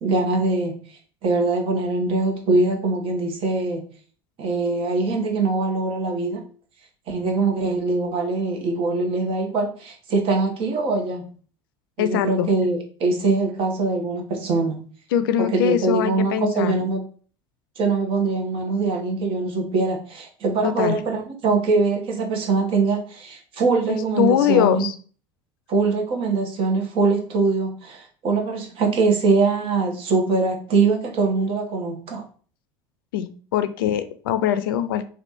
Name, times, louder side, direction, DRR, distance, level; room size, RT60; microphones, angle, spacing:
voice 1, 0.0-0.8 1.2-3.8 4.4-6.4 7.1-11.2 12.0-14.8 15.4-17.0 17.8-24.9 25.7-32.2, right 3 dB, 50° right, 1 dB, 1.2 m, -22 dB
voice 2, 12.0-12.5 15.1-16.9 20.6-21.0 23.9-24.9 33.1-35.0, left 10 dB, 80° left, 11 dB, 0.4 m, -22 dB
3.4 x 2.5 x 4.0 m, 0.43 s
hypercardioid pair, 80°, 12 cm